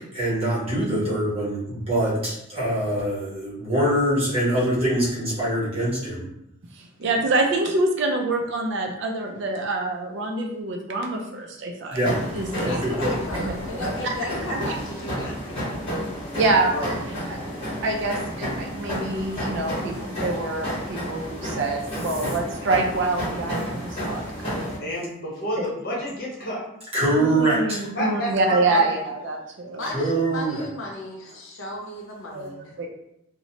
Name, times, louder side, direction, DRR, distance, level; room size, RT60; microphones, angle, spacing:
voice 1, 0.1-6.3 11.9-12.2 12.6-13.1 26.9-27.8 29.9-30.6, right 1 dB, 25° right, -8 dB, 1.0 m, -24 dB
voice 2, 6.7-12.0 12.3-12.8 13.3-13.5 13.8-14.1 14.5-14.6 16.3-17.6 17.8-24.7 25.6-25.7 27.2-29.9 32.3-32.5 32.8-32.9, right 2 dB, 55° right, 2 dB, 0.4 m, -26 dB
sound 1, 12.0-24.8, equal, 25° left, 1.2 m, -31 dB
voice 3, 12.7-15.8 29.7-32.7, left 2 dB, 65° left, -2 dB, 0.6 m, -35 dB
voice 4, 24.8-26.6 27.9-29.0, equal, 45° left, -5 dB, 0.9 m, -30 dB
2.9 x 2.1 x 2.7 m, 0.80 s
head